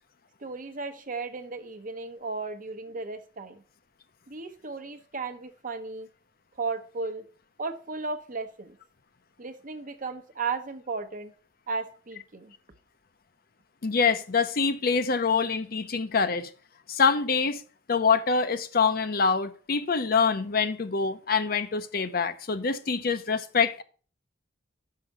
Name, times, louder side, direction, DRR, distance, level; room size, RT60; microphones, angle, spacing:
voice 1, 0.4-3.6 4.3-6.1 6.6-7.3 7.6-8.8 9.4-11.3 11.7-12.5, right 4 dB, 45° right, 0.9 m, -35 dB
voice 2, 13.8-16.5 16.9-17.6 17.9-23.8, left 5 dB, 50° left, 0.7 m, -25 dB
5.9 x 5.7 x 6.5 m
head